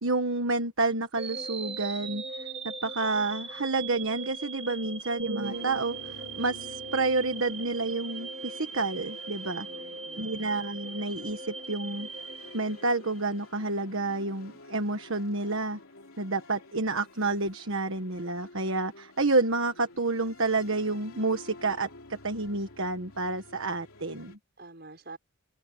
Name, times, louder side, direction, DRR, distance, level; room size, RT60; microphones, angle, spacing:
voice 1, 0.0-9.7 10.2-12.1 12.5-15.8 16.2-24.4, right 3 dB, 65° right, 1.5 m, -29 dB
sound 1, 1.2-13.3, right 4 dB, 25° right, 1.2 m, -40 dB
sound 2, 5.2-9.1 9.6-9.9, right 3 dB, 80° right, 1.7 m, -43 dB
sound 3, 5.4-24.4, left 2 dB, 75° left, 3.0 m, -50 dB
voice 2, 9.4-10.3 24.6-25.2, right 3 dB, 45° right, 6.2 m, -48 dB
open air
head